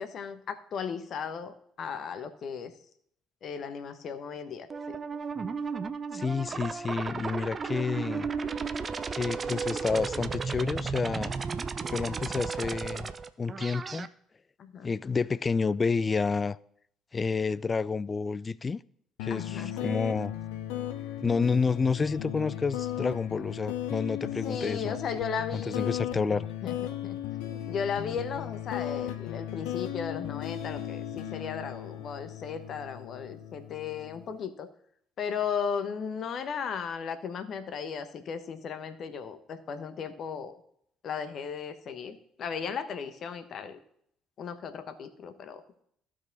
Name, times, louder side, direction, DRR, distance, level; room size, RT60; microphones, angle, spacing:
voice 1, 0.0-2.7 3.4-5.0 14.6-14.9 19.3-19.9 24.2-26.0 26.6-26.7 27.0-27.2 27.4-34.7 35.2-40.6 41.0-43.8 44.4-45.6, left 6 dB, 50° left, 1.0 m, -36 dB
sound 1, 4.7-14.1, right 5 dB, 35° right, 0.6 m, -34 dB
voice 2, 6.1-8.3 9.1-11.3 11.9-13.1 13.4-14.1 14.8-16.6 17.1-18.8 19.2-20.3 21.2-25.0 25.5-26.5, left 4 dB, 30° left, 0.4 m, -29 dB
sound 2, 19.2-34.3, left 12 dB, 70° left, 0.6 m, -36 dB
15.0 x 4.9 x 4.0 m
figure-of-eight pair, 50°, 0 cm